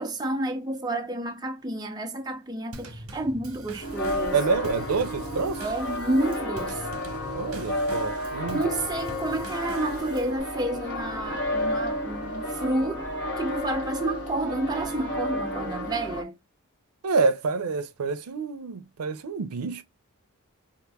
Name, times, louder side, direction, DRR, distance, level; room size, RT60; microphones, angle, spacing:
voice 1, 0.0-4.4 5.6-6.9 8.5-13.1 13.4-16.3, right 1 dB, 20° right, 0.6 m, -30 dB
Drum kit / Snare drum / Bass drum, 2.7-10.4, right 2 dB, 70° right, 1.0 m, -43 dB
sound 1, 3.8-16.2, left 1 dB, 55° left, 1.2 m, -31 dB
voice 2, 4.3-5.6 7.3-8.6 17.0-19.8, right 4 dB, 90° right, 0.5 m, -27 dB
2.8 x 2.5 x 3.4 m
head